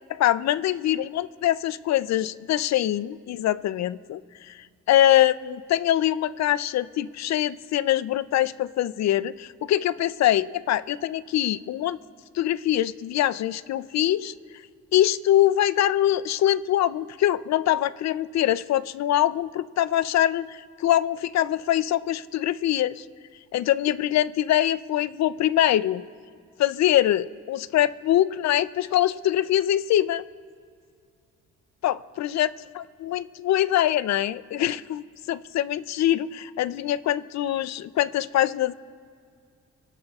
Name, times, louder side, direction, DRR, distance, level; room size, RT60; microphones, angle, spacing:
voice 1, 0.1-4.2 4.9-12.0 12.3-14.3 14.9-23.0 23.5-26.0 26.6-30.2 31.8-32.5 32.8-38.7, left 12 dB, 60° left, 17 dB, 0.5 m, -23 dB
29.5 x 12.0 x 2.4 m, 2.2 s
cardioid pair, 90°, 30 cm